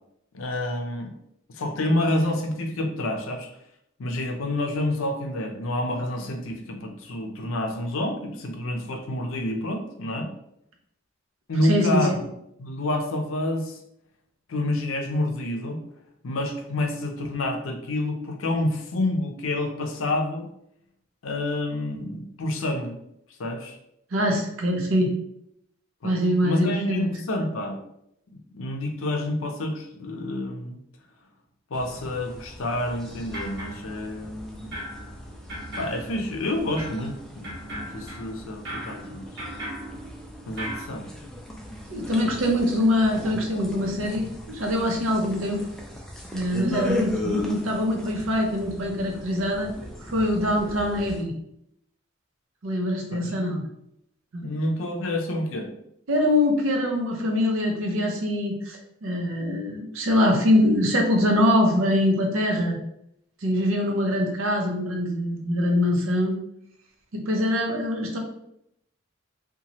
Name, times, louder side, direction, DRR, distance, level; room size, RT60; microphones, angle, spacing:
voice 1, 0.3-1.1 1.5-3.5 4.0-10.3 11.5-12.2 12.6-13.8 14.5-15.8 16.2-20.5 21.2-22.9 23.4-23.8 26.0-27.8 28.5-30.8 31.7-34.7 35.8-39.3 40.5-41.0 53.1-53.4 54.4-55.7, left 1 dB, 85° left, 4 dB, 0.5 m, -28 dB
voice 2, 11.6-12.2 24.1-25.2 26.0-27.1 41.9-45.6 46.3-49.7 50.0-51.3 52.6-53.6 54.3-54.5 56.1-62.8 63.4-66.3 67.1-68.2, left 1 dB, 90° right, 1 dB, 0.6 m, -23 dB
sound 1, 31.7-51.2, left 1 dB, 5° left, 0.3 m, -38 dB
sound 2, 33.0-34.4 34.7-40.8, equal, 60° right, 0.9 m, -38 dB
2.9 x 2.2 x 2.8 m, 0.77 s
head